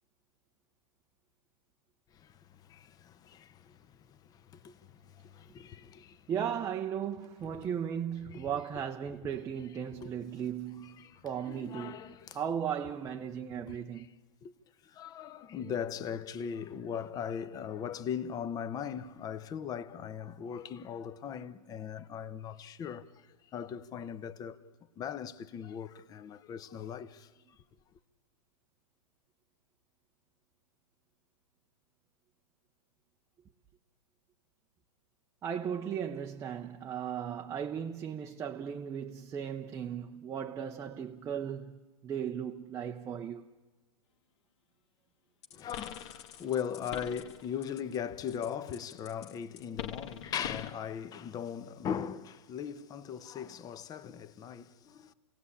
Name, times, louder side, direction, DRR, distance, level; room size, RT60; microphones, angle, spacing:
voice 1, 2.1-6.3 7.4-7.7 8.2-8.5 9.1-9.2 9.7-10.3 10.7-12.4 13.5-14.1 14.4-14.5 14.8-23.3 23.5-24.6 25.0-27.3 45.5-55.1, left 8 dB, 20° left, 1.0 m, -39 dB
voice 2, 6.3-11.0 11.2-12.0 12.3-14.1 35.4-41.8 42.0-43.4, right 8 dB, 15° right, 0.8 m, -36 dB
sound 1, 45.4-48.0 48.3-50.8, left 9 dB, 50° left, 1.5 m, -44 dB
29.0 x 17.5 x 8.5 m
hypercardioid pair, 135°, 18 cm